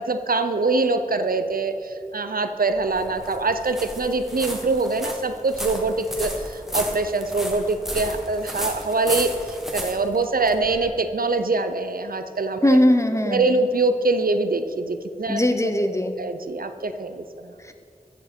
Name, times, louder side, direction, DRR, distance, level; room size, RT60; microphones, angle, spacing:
voice 1, 0.0-12.8 13.2-15.7 16.2-17.5, right 3 dB, 75° right, 9 dB, 0.6 m, -24 dB
sound 1, 2.7-10.9, equal, ahead, 1.5 m, -33 dB
voice 2, 12.6-13.5 15.3-16.1, left 1 dB, 20° left, 7 dB, 0.7 m, -19 dB
14.0 x 7.1 x 4.4 m, 2.4 s
wide cardioid pair, 45°, 15 cm